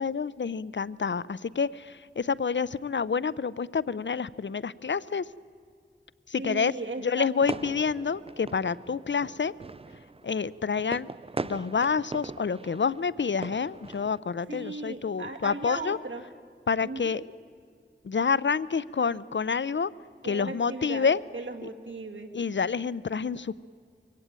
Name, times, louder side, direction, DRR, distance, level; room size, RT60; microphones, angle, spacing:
voice 1, 0.0-5.2 6.3-6.7 7.0-9.5 10.2-11.1 11.4-16.0 16.7-17.2 18.0-19.9 20.2-21.2 22.3-23.6, left 5 dB, 70° left, 19 dB, 0.6 m, -28 dB
voice 2, 6.4-7.6 14.5-16.2 16.8-17.2 20.2-21.1 21.3-22.3, right 3 dB, 80° right, 4 dB, 2.3 m, -37 dB
sound 1, 7.4-14.2, right 3 dB, 30° right, 0.5 m, -40 dB
24.0 x 17.5 x 8.9 m, 2.2 s
wide cardioid pair, 45°, 19 cm